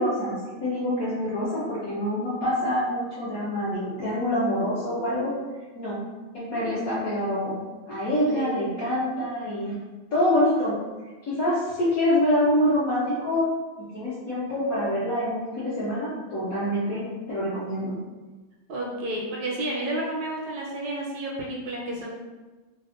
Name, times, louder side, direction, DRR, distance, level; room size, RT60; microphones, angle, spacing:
voice 1, 0.0-5.3 5.7-6.0 6.3-7.6 7.9-9.8 10.1-10.8 11.2-13.5 13.8-18.0, left 1 dB, 70° left, -9 dB, 0.8 m, -26 dB
voice 2, 8.3-8.7 18.7-22.1, right 1 dB, 75° right, -3 dB, 1.2 m, -31 dB
3.3 x 2.0 x 2.4 m, 1.2 s
omnidirectional pair, 2.1 m